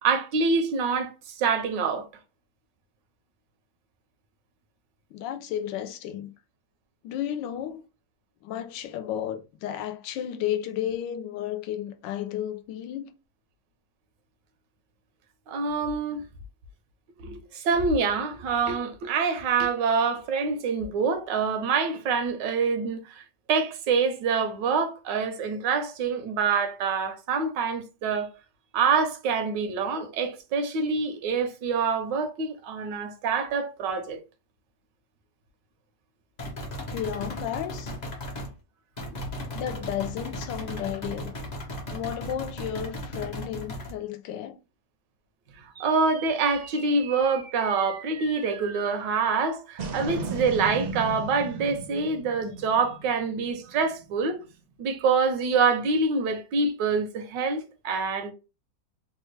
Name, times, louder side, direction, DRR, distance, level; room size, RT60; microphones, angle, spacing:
voice 1, 0.0-2.1 15.5-16.2 17.2-23.2 23.5-28.3 28.7-34.2 45.6-54.4 54.8-58.3, right 5 dB, 80° right, 1.3 m, -26 dB
voice 2, 5.1-6.3 7.0-7.8 8.4-13.1 36.9-37.9 39.5-41.3 41.9-44.6, left 10 dB, 80° left, 1.2 m, -33 dB
sound 1, 36.4-38.5 39.0-43.9, equal, 45° left, 0.5 m, -36 dB
sound 2, 45.8-54.3, right 4 dB, 60° right, 0.5 m, -38 dB
3.4 x 2.2 x 3.2 m
omnidirectional pair, 1.9 m